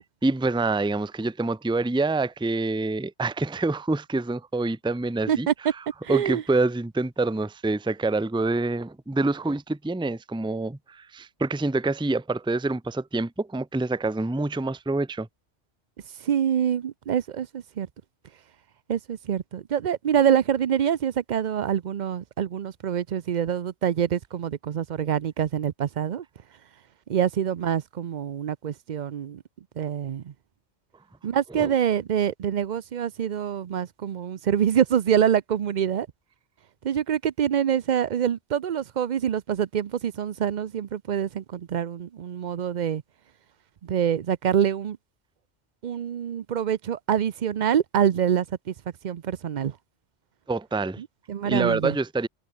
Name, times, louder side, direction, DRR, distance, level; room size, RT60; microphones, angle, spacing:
voice 1, 0.2-5.8 6.1-15.3 31.5-31.7 50.5-51.0 51.4-52.3, right 2 dB, 5° right, 0.8 m, -26 dB
voice 2, 6.0-6.4 16.2-17.9 18.9-26.2 27.1-29.4 29.8-30.3 31.2-36.1 36.8-43.0 43.8-45.0 45.8-48.7 49.0-49.7 51.0-52.0, right 9 dB, 50° right, 0.6 m, -25 dB
omnidirectional pair, 1.2 m